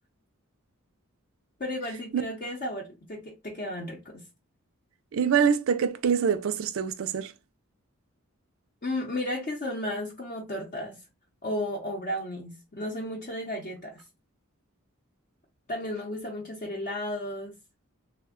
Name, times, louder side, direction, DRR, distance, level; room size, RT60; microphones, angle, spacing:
voice 1, 1.6-4.2 8.8-11.0 11.4-14.0 15.7-17.6, left 1 dB, 40° left, 0.6 m, -34 dB
voice 2, 5.1-7.3, right 7 dB, 70° right, 0.4 m, -25 dB
3.3 x 2.1 x 3.6 m
head